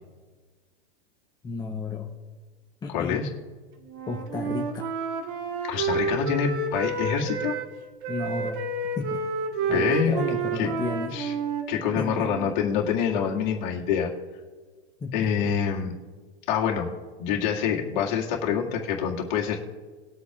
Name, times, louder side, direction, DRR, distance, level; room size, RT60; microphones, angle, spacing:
voice 1, 1.4-2.1 2.8-3.3 4.1-4.9 8.1-8.7 9.0-9.2 9.7-11.2 12.0-12.3 15.0-15.5, left 4 dB, 10° left, 2 dB, 0.9 m, -32 dB
voice 2, 2.9-3.3 5.6-7.5 9.7-10.2 10.5-10.7 11.1-11.3 11.7-14.1 15.1-15.9 16.5-16.9 17.2-19.6, left 7 dB, 50° left, -1 dB, 2.2 m, -26 dB
Wind instrument woodwind instrument, 3.9-7.7 8.0-12.5, right 4 dB, 40° right, 1.5 m, -30 dB
20.5 x 8.1 x 2.5 m, 1.4 s
figure-of-eight pair, 95°, 32 cm